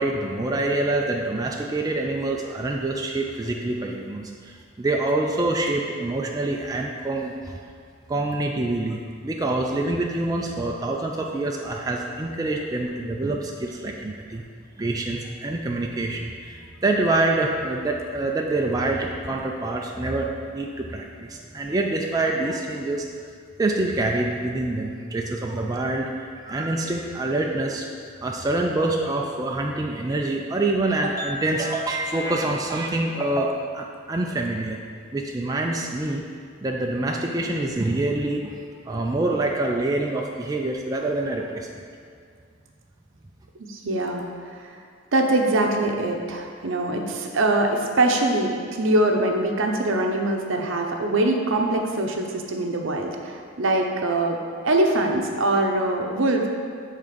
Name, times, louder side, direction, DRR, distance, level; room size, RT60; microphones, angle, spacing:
voice 1, 0.0-7.5 8.1-14.4 14.8-23.0 23.6-26.1 26.5-27.9 28.2-34.8 35.1-36.2 36.6-38.5 38.9-41.7, right 2 dB, 20° right, 0 dB, 0.4 m, -26 dB
voice 2, 43.6-44.2 44.5-44.8 45.1-54.4 54.6-56.5, right 2 dB, 65° right, 2 dB, 0.7 m, -23 dB
7.6 x 3.6 x 5.1 m, 2.2 s
head